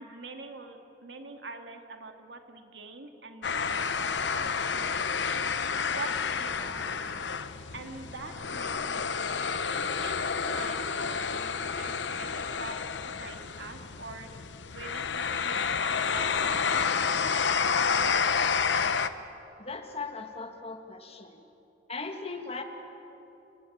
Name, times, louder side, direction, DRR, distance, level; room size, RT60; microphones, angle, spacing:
voice 1, 0.0-4.8 5.2-9.5 9.9-12.8 13.2-14.5 14.7-18.2, right 3 dB, 80° right, 5 dB, 2.4 m, -45 dB
sound 1, 3.4-19.1, left 6 dB, 80° left, 1.0 m, -30 dB
voice 2, 19.6-21.5 21.9-22.6, left 4 dB, 35° left, 6 dB, 2.0 m, -38 dB
29.5 x 19.0 x 8.7 m, 2.9 s
head